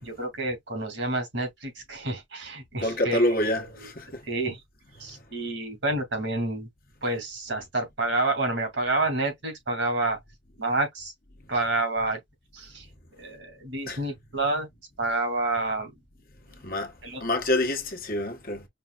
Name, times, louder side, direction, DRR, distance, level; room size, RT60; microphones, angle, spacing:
voice 1, 0.0-3.4 4.3-4.6 5.0-6.7 7.0-10.2 10.6-11.1 11.5-12.2 12.5-12.8 13.2-14.7 15.0-15.9 17.0-17.2, right 2 dB, 80° right, 2.8 m, -28 dB
voice 2, 2.8-4.2 13.9-14.0 16.6-16.9 17.2-18.7, left 1 dB, 50° left, 1.1 m, -27 dB
5.4 x 3.3 x 2.4 m
head